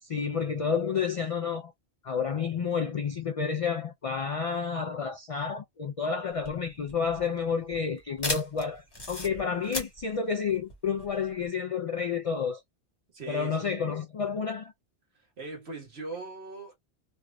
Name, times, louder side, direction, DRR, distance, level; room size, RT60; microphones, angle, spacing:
voice 1, 0.0-1.7 2.0-12.6 13.3-14.7, left 6 dB, 65° left, 0.3 m, -30 dB
sound 1, 6.3-11.5, left 2 dB, 25° left, 1.1 m, -37 dB
voice 2, 13.1-13.9 15.1-16.7, right 3 dB, 70° right, 1.6 m, -40 dB
3.2 x 2.6 x 2.2 m
omnidirectional pair, 1.1 m